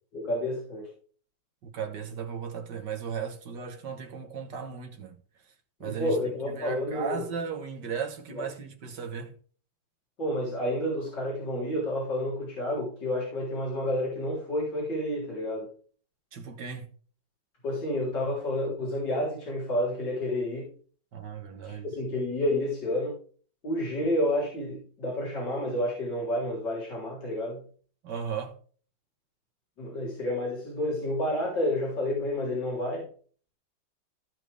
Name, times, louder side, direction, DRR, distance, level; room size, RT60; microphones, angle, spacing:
voice 1, 0.1-0.9 5.8-7.2 8.4-8.5 10.2-15.7 17.6-20.7 21.6-23.2 23.6-27.6 29.8-33.1, left 1 dB, 65° left, 4.3 m, -30 dB
voice 2, 1.6-5.2 5.8-9.4 16.3-16.9 21.1-21.9 28.0-28.6, right 6 dB, 65° right, 2.0 m, -36 dB
15.5 x 5.9 x 3.4 m
omnidirectional pair, 2.0 m